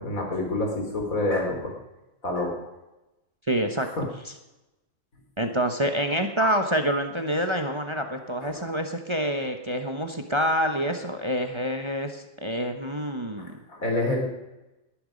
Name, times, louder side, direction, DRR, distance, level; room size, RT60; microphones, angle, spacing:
voice 1, 0.0-1.7 2.2-2.7 3.8-4.0 6.4-6.6 8.4-8.7 13.4-14.3, left 2 dB, 80° left, 2 dB, 3.6 m, -28 dB
voice 2, 3.5-3.9 5.4-13.5, equal, 25° right, 5 dB, 1.0 m, -27 dB
19.5 x 10.5 x 5.2 m, 0.98 s
omnidirectional pair, 1.4 m